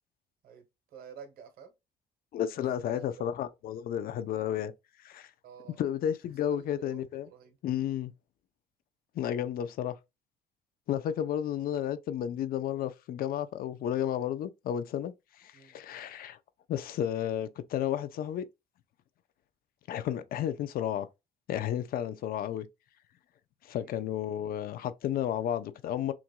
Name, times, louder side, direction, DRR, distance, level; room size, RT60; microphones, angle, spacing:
voice 1, 0.4-1.7 2.8-3.2 5.4-5.8 6.5-7.6 15.5-15.8 23.7-24.1, right 7 dB, 60° right, 1.5 m, -51 dB
voice 2, 2.3-4.7 5.0-5.3 5.8-7.3 7.6-8.1 9.1-10.0 10.9-16.4 16.7-18.4 19.9-21.1 21.5-22.7 23.6-26.1, left 10 dB, 60° left, 0.6 m, -32 dB
5.9 x 2.6 x 2.2 m
cardioid pair, 110°, 17 cm